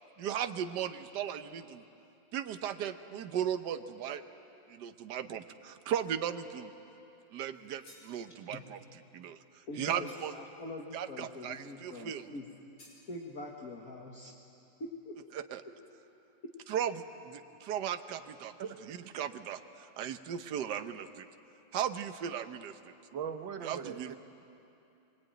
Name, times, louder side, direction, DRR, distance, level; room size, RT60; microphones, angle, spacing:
voice 1, 0.2-1.8 2.3-4.2 4.7-6.7 7.3-8.8 9.1-10.3 10.9-12.3 15.3-15.6 16.7-18.5 18.9-21.3 21.7-22.8 23.6-24.2, right 9 dB, 65° right, 9 dB, 1.5 m, -37 dB
sound 1, 7.5-8.2 10.1-10.5 12.8-13.0, left 1 dB, 70° left, 5.2 m, -57 dB
voice 2, 9.7-12.5 13.1-14.3 14.8-15.2, left 2 dB, 50° left, -1 dB, 2.1 m, -43 dB
voice 3, 23.1-24.2, right 7 dB, 85° right, 7 dB, 1.9 m, -39 dB
24.0 x 24.0 x 9.2 m, 2.8 s
omnidirectional pair, 2.0 m